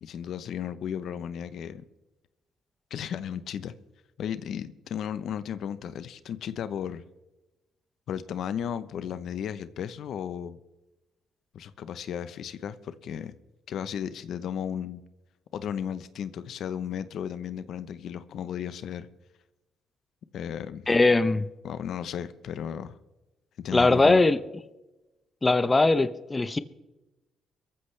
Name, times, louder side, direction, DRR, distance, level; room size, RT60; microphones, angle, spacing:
voice 1, 0.0-1.8 2.9-3.7 4.2-7.0 8.1-10.6 11.5-13.3 13.7-15.0 15.5-19.1 20.3-20.9 21.6-23.0 23.6-24.3, left 9 dB, 70° left, 0.8 m, -34 dB
voice 2, 20.9-21.5 23.7-24.4 25.4-26.6, left 3 dB, 20° left, 0.8 m, -20 dB
23.5 x 14.5 x 3.3 m
cardioid pair, 90°, 0 cm